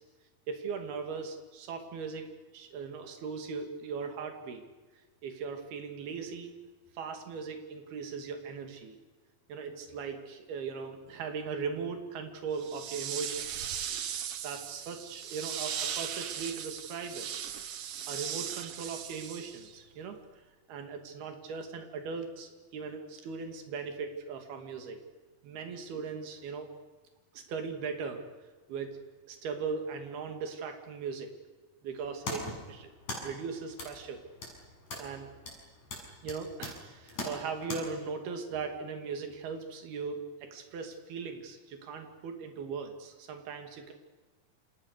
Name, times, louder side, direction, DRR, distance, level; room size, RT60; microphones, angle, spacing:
voice 1, 0.5-4.6 5.2-6.5 6.9-9.0 9.5-14.0 14.4-17.3 18.1-25.0 25.4-26.7 27.3-28.2 28.7-29.0 29.3-31.3 31.8-32.9 33.2-34.2 35.0-35.3 36.2-43.9, right 5 dB, 80° right, 5 dB, 4.5 m, -39 dB
sound 1, 12.6-19.8, right 9 dB, 65° right, 1.4 m, -38 dB
sound 2, 31.9-37.8, left 2 dB, 50° left, 8.4 m, -42 dB
30.0 x 28.5 x 6.7 m, 1.3 s
omnidirectional pair, 4.4 m